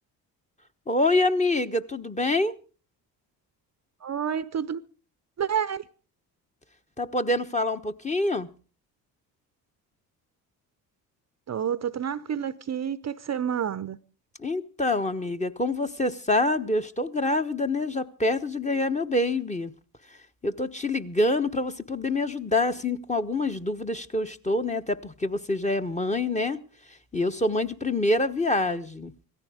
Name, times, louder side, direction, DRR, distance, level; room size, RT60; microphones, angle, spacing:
voice 1, 0.9-2.5 7.0-8.5 14.4-19.7 20.4-26.6 27.1-29.1, left 2 dB, 15° left, 1.1 m, -26 dB
voice 2, 4.0-4.8 5.4-5.8 11.5-14.0, right 8 dB, 35° right, 0.7 m, -29 dB
17.0 x 14.5 x 5.0 m
hypercardioid pair, 55°, 46 cm